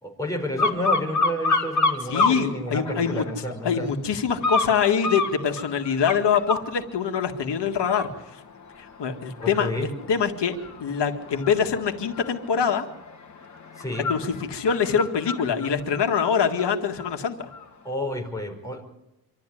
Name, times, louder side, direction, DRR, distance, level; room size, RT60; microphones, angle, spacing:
voice 1, 0.0-3.9 9.4-9.9 13.8-14.1 17.8-18.8, left 1 dB, 10° left, 0 dB, 5.0 m, -30 dB
sound 1, 0.6-2.4 2.8-3.5 4.4-6.7 7.2-7.4 7.8-17.1 17.5-17.6, left 3 dB, 45° left, 2.3 m, -29 dB
voice 2, 2.1-3.2 3.6-8.4 8.8-12.9 14.1-17.5, left 7 dB, 85° left, 4 dB, 1.9 m, -24 dB
26.0 x 13.0 x 10.0 m, 0.91 s
wide cardioid pair, 155°, 40 cm